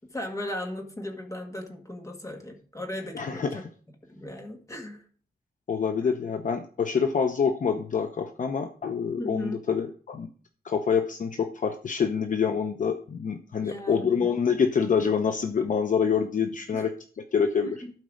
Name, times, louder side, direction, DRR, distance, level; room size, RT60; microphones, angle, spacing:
voice 1, 0.1-3.6 4.1-5.0 9.2-9.6 13.6-14.3 16.7-16.9 17.7-17.9, left 1 dB, 20° left, 2 dB, 1.9 m, -37 dB
voice 2, 3.1-3.7 5.7-10.3 10.6-17.8, left 6 dB, 50° left, 6 dB, 0.8 m, -26 dB
12.5 x 4.6 x 6.4 m, 0.44 s
wide cardioid pair, 165°, 17 cm